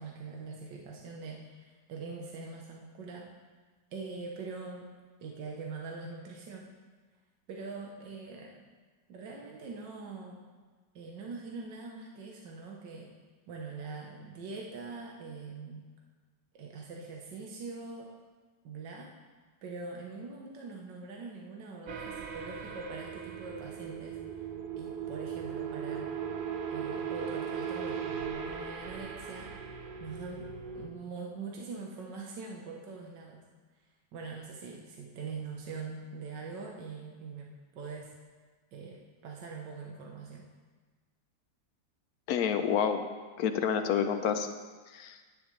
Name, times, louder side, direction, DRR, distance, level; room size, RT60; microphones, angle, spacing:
voice 1, 0.0-3.3 3.9-4.9 5.2-6.7 7.5-8.6 9.1-10.4 10.9-13.1 13.5-15.8 16.5-18.1 18.6-19.1 19.6-24.2 24.8-26.1 26.7-29.5 30.0-30.5 30.7-33.4 34.1-38.1 38.7-40.5, right 4 dB, 85° right, 0 dB, 1.6 m, -43 dB
sound 1, 21.9-30.9, right 7 dB, 60° right, 0.5 m, -38 dB
voice 2, 42.3-43.1 43.4-44.5 44.9-45.2, left 7 dB, 70° left, 8 dB, 1.1 m, -28 dB
10.5 x 10.5 x 3.2 m, 1.4 s
omnidirectional pair, 1.9 m